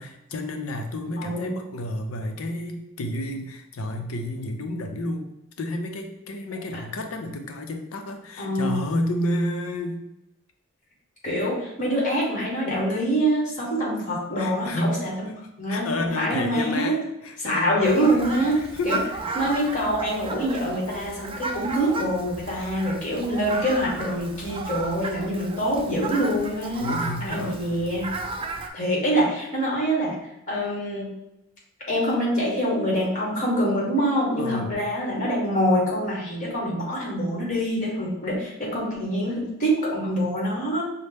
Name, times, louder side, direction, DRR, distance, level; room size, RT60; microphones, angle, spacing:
voice 1, 0.0-5.3 5.6-10.0 14.4-15.0 15.7-17.8 18.1-19.0 26.8-27.7 34.4-34.9, left 1 dB, 90° left, 5 dB, 0.6 m, -30 dB
voice 2, 1.2-1.6 8.4-8.8 11.2-15.3 15.6-16.9 17.4-18.6 18.8-19.0 19.3-26.9 27.2-28.1 28.7-30.2 30.5-31.1 31.9-40.8, equal, 40° left, -3 dB, 1.3 m, -25 dB
Fowl, 17.8-28.7, right 3 dB, 25° right, 0.3 m, -34 dB
5.4 x 2.1 x 3.3 m, 0.85 s
head